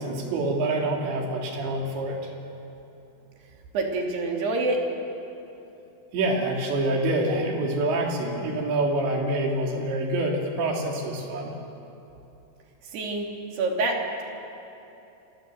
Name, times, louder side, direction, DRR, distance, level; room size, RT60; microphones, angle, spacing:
voice 1, 0.0-2.3 6.1-11.6, right 2 dB, 90° right, 0 dB, 5.6 m, -26 dB
voice 2, 3.7-4.8 12.9-13.3 13.5-14.0, right 2 dB, 70° right, 0 dB, 5.0 m, -26 dB
28.0 x 25.5 x 7.9 m, 3.0 s
omnidirectional pair, 5.0 m